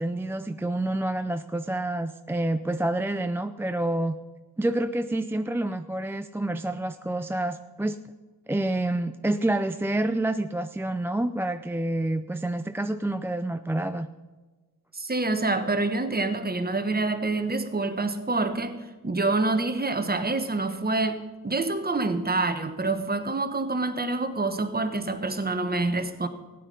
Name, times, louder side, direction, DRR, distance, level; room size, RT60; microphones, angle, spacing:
voice 1, 0.0-4.2 4.6-8.0 8.5-14.1, right 1 dB, 5° right, 9 dB, 0.3 m, -28 dB
voice 2, 14.9-26.3, right 3 dB, 25° right, 9 dB, 1.2 m, -27 dB
15.0 x 9.6 x 5.4 m, 1.3 s
cardioid pair, 70°, 40 cm